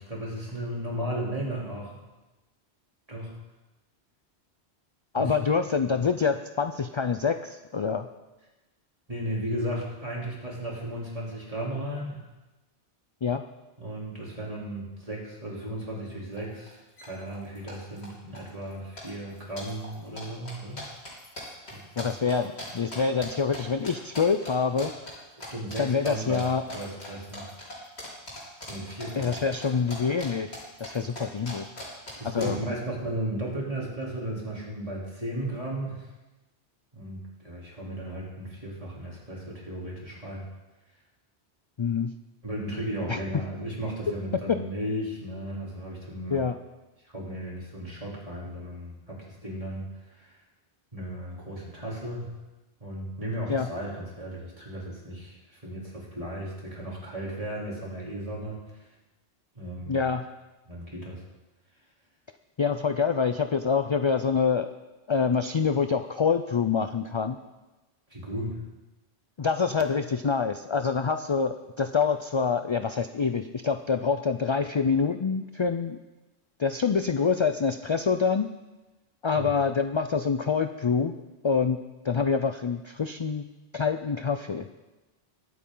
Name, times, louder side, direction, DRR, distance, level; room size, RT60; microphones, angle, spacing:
voice 1, 0.0-2.0 3.1-3.3 5.1-5.3 9.1-12.2 13.8-20.8 21.7-22.1 25.4-27.4 28.7-29.4 32.2-36.1 36.9-40.4 42.4-46.4 47.1-50.4 50.9-52.3 52.8-58.9 59.6-60.0 60.7-61.2 68.1-68.6 79.4-79.5, right 1 dB, 30° right, -5 dB, 3.6 m, -35 dB
voice 2, 5.1-8.1 13.2-13.4 22.0-24.9 25.8-26.6 29.2-30.5 30.8-31.6 32.2-32.6 41.8-42.1 43.1-43.2 46.3-46.6 53.5-53.7 59.9-60.3 62.6-64.7 65.1-67.4 69.4-76.0 76.6-78.5 79.2-81.1 81.4-81.8 82.0-83.4 83.7-84.7, left 5 dB, 50° left, 8 dB, 0.3 m, -26 dB
sound 1, 16.4-16.5 16.7-17.1 17.3-18.1 18.3-18.7 19.0-23.6 23.8-24.5 24.8-25.1 25.4-25.8 26.0-30.3 30.5-32.5, left 1 dB, 70° left, 3.6 m, -40 dB
22.5 x 8.4 x 3.9 m, 1.1 s
omnidirectional pair, 1.1 m